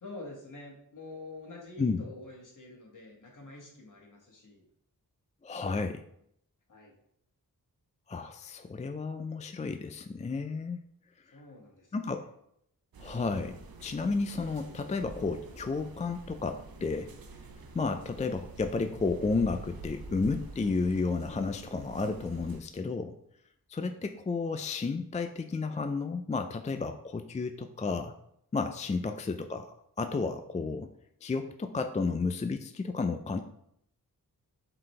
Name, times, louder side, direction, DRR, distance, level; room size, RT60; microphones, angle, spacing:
voice 1, 0.0-4.7 6.7-7.0 11.3-12.0, left 2 dB, 55° left, -1 dB, 1.8 m, -47 dB
voice 2, 5.4-6.0 8.1-10.8 11.9-12.3 13.0-17.1 17.7-23.2 23.7-28.1 28.5-29.7 30.0-30.9 31.2-33.4, left 4 dB, 20° left, 7 dB, 0.4 m, -32 dB
sound 1, 12.9-22.6, right 2 dB, 70° right, 0.9 m, -47 dB
7.5 x 4.1 x 3.3 m, 0.73 s
wide cardioid pair, 75°, 37 cm